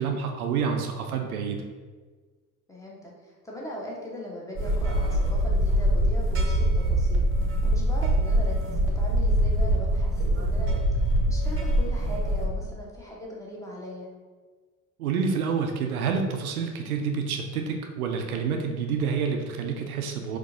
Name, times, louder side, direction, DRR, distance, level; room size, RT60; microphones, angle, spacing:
voice 1, 0.0-1.7 15.0-20.4, right 6 dB, 75° right, 4 dB, 0.5 m, -28 dB
voice 2, 2.7-7.2 7.6-10.7 11.3-14.1, equal, 5° left, -4 dB, 1.1 m, -39 dB
sound 1, 4.6-12.5, right 1 dB, 30° right, 0.9 m, -23 dB
4.3 x 2.6 x 3.7 m, 1.4 s
figure-of-eight pair, 55°, 44 cm